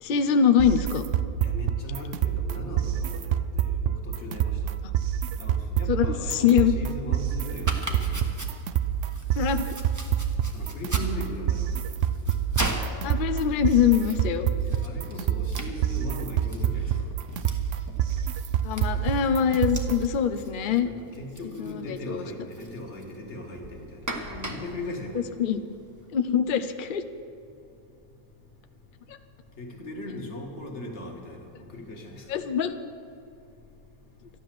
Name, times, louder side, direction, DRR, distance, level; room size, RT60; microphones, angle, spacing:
voice 1, 0.0-1.0 5.9-6.7 9.4-9.8 13.0-14.5 18.6-20.9 21.6-22.2 25.4-25.6 26.1-27.0 29.1-29.2 32.3-32.7, left 8 dB, 65° left, 0.5 m, -23 dB
sound 1, 0.6-20.2, right 10 dB, 70° right, 0.7 m, -27 dB
voice 2, 1.4-4.6 5.4-8.1 10.5-11.9 14.6-17.1 20.8-24.0 24.3-25.3 29.6-32.4, left 2 dB, 45° left, 1.9 m, -39 dB
Domestic sounds home sounds, 7.6-26.0, right 1 dB, 15° right, 1.0 m, -40 dB
13.0 x 11.0 x 7.6 m
omnidirectional pair, 1.7 m